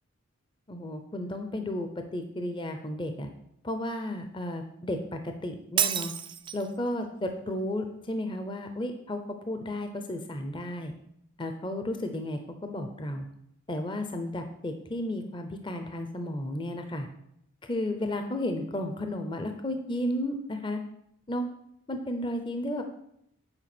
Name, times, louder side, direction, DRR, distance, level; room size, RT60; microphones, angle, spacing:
voice 1, 0.7-3.3 3.6-6.1 6.5-9.2 9.5-10.9 11.4-13.3 13.7-17.1 17.7-20.8 21.3-21.5 21.9-22.8, left 1 dB, 25° left, 6 dB, 0.6 m, -33 dB
Shatter, 5.8-6.8, right 9 dB, 20° right, 0.3 m, -29 dB
8.8 x 4.8 x 6.0 m, 0.75 s
head